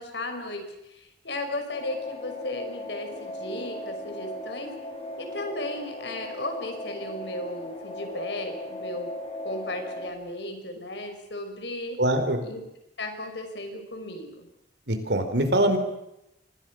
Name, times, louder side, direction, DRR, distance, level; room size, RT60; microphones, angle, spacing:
voice 1, 0.0-4.7 5.2-9.1 9.4-12.0 12.4-12.6 13.0-14.5, left 2 dB, 80° left, 5 dB, 6.2 m, -35 dB
sound 1, 1.7-10.1, left 1 dB, 40° left, 5.7 m, -37 dB
voice 2, 12.0-12.4 14.9-15.8, right 1 dB, 70° right, 8 dB, 4.6 m, -23 dB
29.0 x 25.0 x 6.5 m, 0.86 s
head